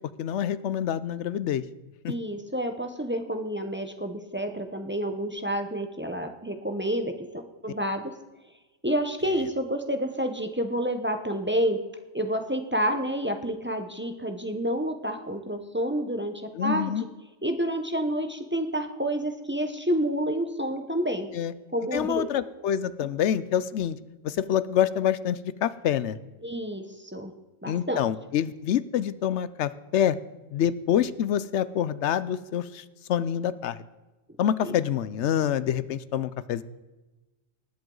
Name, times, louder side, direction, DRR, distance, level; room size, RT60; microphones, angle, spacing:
voice 1, 0.2-1.6 16.6-17.0 21.3-21.5 21.9-24.0 24.2-26.2 27.7-30.2 30.5-33.8 34.4-36.6, left 10 dB, 70° left, 16 dB, 0.8 m, -26 dB
voice 2, 2.1-8.1 8.8-11.8 12.1-17.1 17.4-21.3 21.7-22.3 26.4-27.3 27.6-28.0 34.6-34.7, equal, 10° right, 6 dB, 0.6 m, -29 dB
19.5 x 7.9 x 3.8 m, 1.1 s
omnidirectional pair, 1.3 m